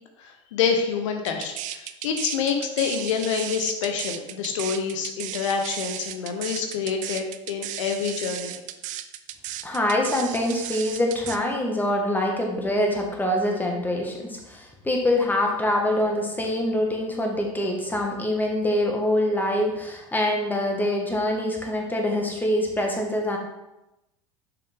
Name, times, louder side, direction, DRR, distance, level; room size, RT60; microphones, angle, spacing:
voice 1, 0.2-8.6, left 6 dB, 80° left, 4 dB, 0.9 m, -27 dB
sound 1, 1.3-11.4, right 13 dB, 55° right, 0.5 m, -35 dB
voice 2, 9.6-23.4, left 1 dB, 10° left, 1 dB, 1.7 m, -25 dB
6.8 x 5.9 x 3.7 m, 0.93 s
hypercardioid pair, 85°, 16 cm